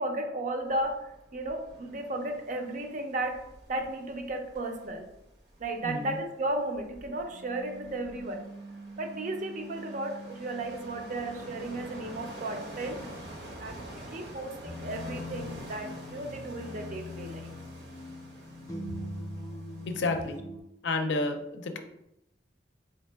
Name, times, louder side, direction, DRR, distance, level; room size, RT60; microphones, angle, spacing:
voice 1, 0.0-3.4 3.7-5.1 5.6-17.6 18.9-19.0, right 2 dB, 45° right, 4 dB, 0.5 m, -35 dB
sound 1, 0.6-20.4, right 1 dB, 70° right, 0.9 m, -48 dB
voice 2, 5.8-6.2 19.9-20.4 20.8-21.8, left 3 dB, 80° left, 6 dB, 0.5 m, -30 dB
sound 2, 14.6-20.6, left 1 dB, 20° left, 0.5 m, -41 dB
3.6 x 2.8 x 3.4 m, 0.84 s
head